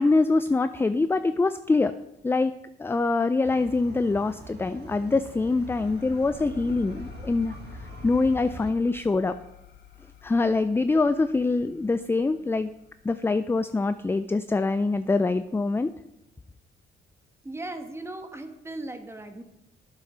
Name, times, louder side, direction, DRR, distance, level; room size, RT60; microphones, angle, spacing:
voice 1, 0.0-1.9 2.2-7.6 8.0-9.4 10.2-12.7 13.0-15.9, left 3 dB, 10° left, 12 dB, 0.4 m, -24 dB
sound 1, 3.4-8.7, right 3 dB, 55° right, 1.7 m, -43 dB
sound 2, 5.5-14.7, left 11 dB, 60° left, 1.1 m, -49 dB
voice 2, 17.4-19.4, right 2 dB, 15° right, 7 dB, 1.4 m, -37 dB
9.4 x 7.1 x 6.1 m, 0.90 s
cardioid pair, 90°, 20 cm